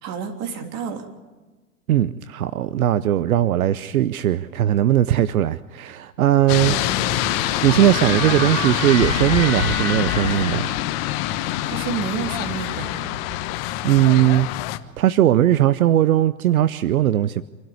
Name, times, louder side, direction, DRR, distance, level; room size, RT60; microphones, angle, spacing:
voice 1, 0.0-1.1 6.7-7.0 11.6-12.9, right 7 dB, 35° right, 5 dB, 3.3 m, -29 dB
voice 2, 1.9-6.8 7.6-10.7 13.8-14.5 15.0-17.4, right 12 dB, 75° right, 16 dB, 0.8 m, -19 dB
sound 1, 6.5-14.8, left 15 dB, 45° left, 1.2 m, -25 dB
sound 2, 7.0-13.8, right 6 dB, 50° right, 3.1 m, -33 dB
26.5 x 12.5 x 9.5 m, 1.3 s
hypercardioid pair, 120°, 43 cm